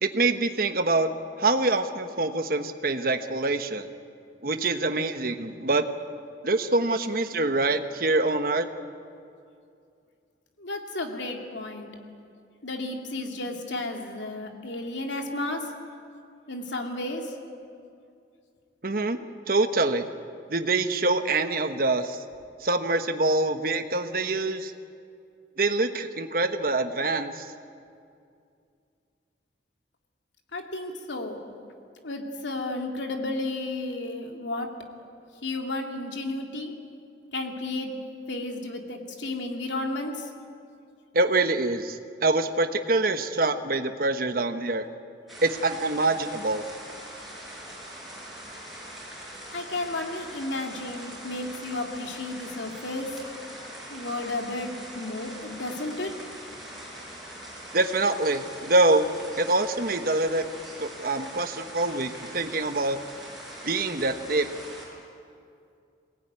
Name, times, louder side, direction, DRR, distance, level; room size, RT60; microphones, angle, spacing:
voice 1, 0.0-1.1 1.4-3.9 4.4-5.8 6.4-8.7 18.8-19.2 19.5-20.1 20.5-22.2 22.6-24.7 25.6-27.5 41.1-44.9 45.4-46.6 57.7-59.1 59.4-60.5 60.8-63.0 63.6-64.5, right 2 dB, 50° right, 8 dB, 1.2 m, -25 dB
voice 2, 10.6-11.9 12.6-15.7 16.5-17.4 30.5-31.4 32.0-34.7 35.4-36.7 37.3-40.3 49.5-53.1 53.9-56.1, left 2 dB, 80° left, 3 dB, 2.8 m, -33 dB
sound 1, 45.3-64.9, right 1 dB, ahead, 6.2 m, -42 dB
23.0 x 18.5 x 9.7 m, 2.4 s
head